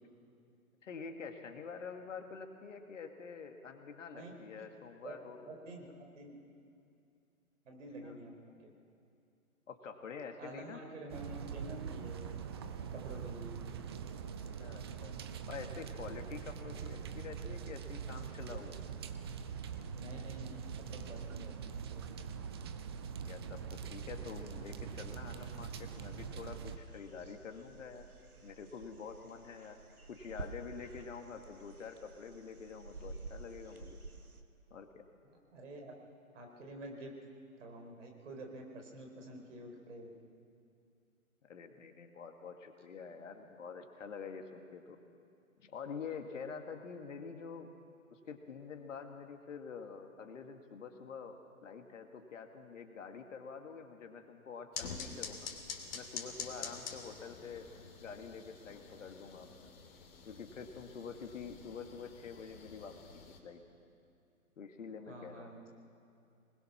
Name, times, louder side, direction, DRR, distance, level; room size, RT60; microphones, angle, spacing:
voice 1, 0.8-5.5 8.0-8.2 9.7-10.8 14.6-15.2 15.5-18.8 23.2-28.1 28.4-29.8 30.1-34.0 34.7-35.1 41.4-45.0 45.6-47.7 48.1-55.5 55.9-57.7 58.0-59.7 60.3-63.0 63.4-63.6 64.6-65.5, left 5 dB, 60° left, 5 dB, 2.1 m, -47 dB
voice 2, 4.1-4.6 5.0-5.1 5.5-5.8 6.2-6.4 7.6-8.3 8.6-8.7 10.4-12.2 12.9-13.5 20.0-22.0 35.5-35.9 36.3-37.1 37.6-40.1 65.1-65.6, right 1 dB, 55° right, 2 dB, 4.7 m, -48 dB
sound 1, 11.1-26.8, right 7 dB, 20° right, 0.5 m, -43 dB
sound 2, 25.4-34.4, right 3 dB, 90° right, 1.8 m, -51 dB
sound 3, 54.7-63.4, left 6 dB, 40° left, 2.8 m, -47 dB
25.0 x 20.5 x 6.0 m, 2.5 s
figure-of-eight pair, 130°, 43 cm